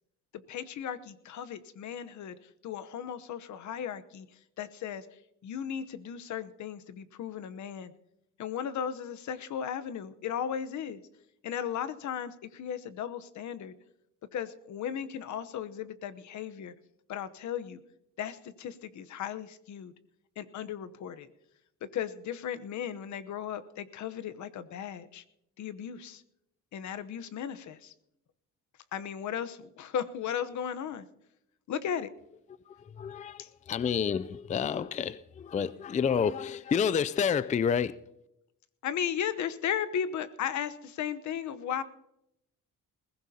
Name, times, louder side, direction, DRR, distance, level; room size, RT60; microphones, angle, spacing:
voice 1, 0.5-2.4 2.6-4.3 4.6-5.1 5.4-7.9 8.4-11.0 11.4-13.7 14.3-16.7 17.1-17.8 18.2-19.9 20.4-21.3 21.8-25.2 25.6-26.2 26.7-27.9 28.9-31.0 31.7-32.1 33.4-33.5 38.8-41.8, left 8 dB, 70° left, 1.0 m, -36 dB
voice 2, 32.7-38.1, left 7 dB, 25° left, 0.4 m, -29 dB
20.5 x 15.5 x 2.8 m
cardioid pair, 90°, 30 cm